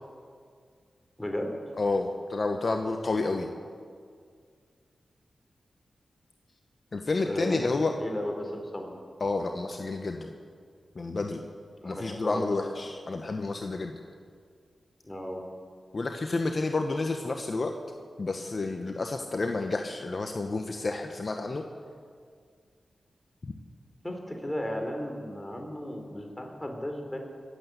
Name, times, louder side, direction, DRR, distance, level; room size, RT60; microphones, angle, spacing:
voice 1, 1.2-1.6 3.1-3.3 7.2-7.7 8.0-8.9 11.8-12.7 15.0-15.4 24.0-27.2, equal, 15° left, 2 dB, 3.9 m, -35 dB
voice 2, 1.8-3.5 6.9-7.9 9.2-10.3 10.9-11.4 11.8-14.0 15.9-17.7 18.2-21.6 23.4-23.5, left 3 dB, 55° left, 4 dB, 1.1 m, -30 dB
21.0 x 8.2 x 8.2 m, 2.1 s
cardioid pair, 45°, 0 cm